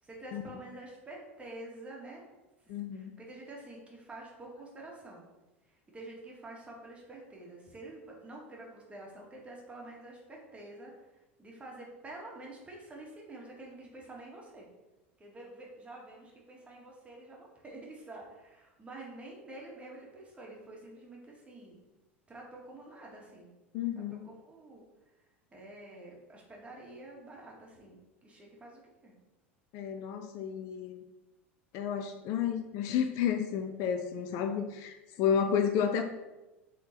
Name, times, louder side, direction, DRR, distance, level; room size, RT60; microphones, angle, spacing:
voice 1, 0.0-2.3 2.6-5.3 5.6-14.7 15.2-21.8 22.3-23.5 24.1-29.1, right 2 dB, 20° right, -2 dB, 2.1 m, -48 dB
voice 2, 2.7-3.1 23.7-24.2 29.7-31.0 31.7-36.0, left 8 dB, 50° left, 6 dB, 0.6 m, -31 dB
6.4 x 3.9 x 4.4 m, 1.1 s
figure-of-eight pair, 75°, 7 cm